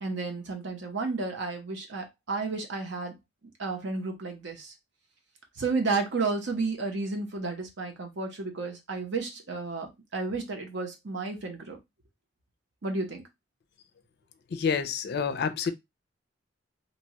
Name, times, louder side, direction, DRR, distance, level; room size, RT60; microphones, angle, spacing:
voice 1, 0.0-3.2 3.6-4.7 5.6-11.8 12.8-13.2, right 3 dB, 65° right, 0.8 m, -32 dB
voice 2, 14.5-15.7, left 6 dB, 60° left, 0.4 m, -28 dB
2.8 x 2.2 x 2.8 m
head